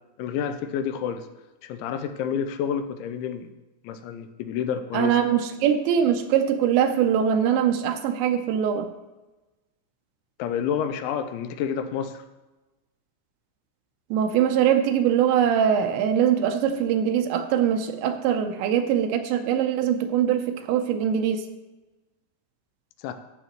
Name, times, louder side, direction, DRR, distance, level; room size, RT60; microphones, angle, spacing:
voice 1, 0.2-1.3 1.6-3.5 3.8-5.2 10.4-12.2 23.0-23.1, left 8 dB, 85° left, 9 dB, 3.0 m, -29 dB
voice 2, 4.9-8.9 14.1-21.5, right 9 dB, 80° right, 7 dB, 2.9 m, -22 dB
12.5 x 8.6 x 3.0 m, 1.1 s
omnidirectional pair, 5.4 m